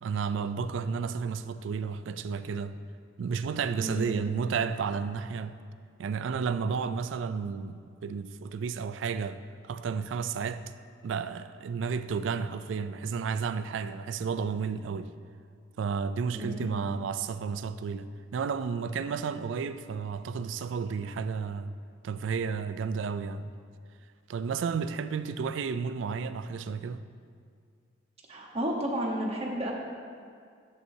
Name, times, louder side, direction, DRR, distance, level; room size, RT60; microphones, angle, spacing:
voice 1, 0.0-2.8 3.2-5.6 6.0-10.7 11.0-15.1 15.8-21.7 22.0-23.5 24.3-27.0, right 5 dB, 75° right, 0.3 m, -32 dB
voice 2, 3.8-4.3 16.3-16.6 28.3-29.7, equal, 35° right, 1.1 m, -32 dB
11.0 x 7.5 x 2.7 m
head